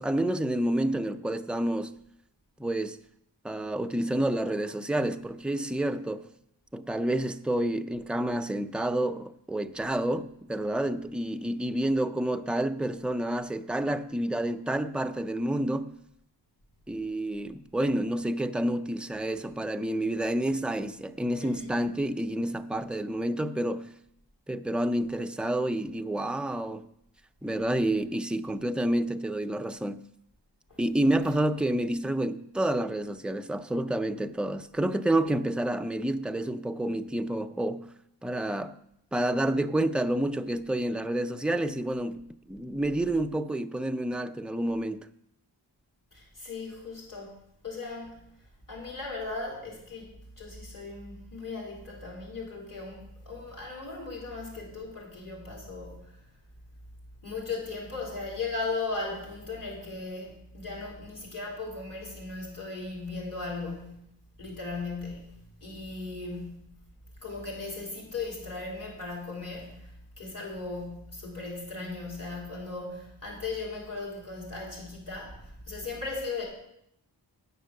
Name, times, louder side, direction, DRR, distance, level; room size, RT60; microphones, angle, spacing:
voice 1, 0.0-2.0 2.6-3.0 3.4-6.3 6.7-16.0 16.9-23.9 24.5-26.9 27.4-30.0 30.8-37.9 38.2-38.8 39.1-45.1, right 1 dB, ahead, 0.4 m, -29 dB
voice 2, 21.4-21.7 30.7-30.8 46.1-47.3 47.6-48.2 48.7-56.2 57.2-64.1 64.4-66.7 67.2-76.4, left 3 dB, 45° left, 3.3 m, -37 dB
9.8 x 6.7 x 6.5 m
wide cardioid pair, 90°, 44 cm